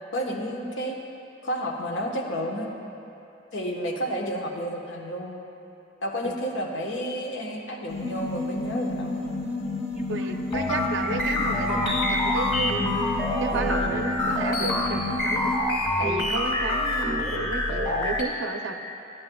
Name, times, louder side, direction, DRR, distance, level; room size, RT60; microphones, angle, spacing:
voice 1, 0.1-1.0 1.4-2.7 3.5-5.4 6.0-9.2, equal, 80° left, 0 dB, 1.0 m, -31 dB
sound 1, 7.9-15.6, left 2 dB, 60° left, 1.4 m, -31 dB
sound 2, 10.0-17.5, right 2 dB, 5° right, 0.7 m, -39 dB
voice 2, 10.1-12.8 13.4-15.5 16.0-18.7, right 3 dB, 85° right, 5 dB, 0.6 m, -32 dB
sound 3, 10.5-18.2, left 1 dB, 25° left, 1.7 m, -26 dB
13.0 x 10.0 x 2.2 m, 2.7 s
head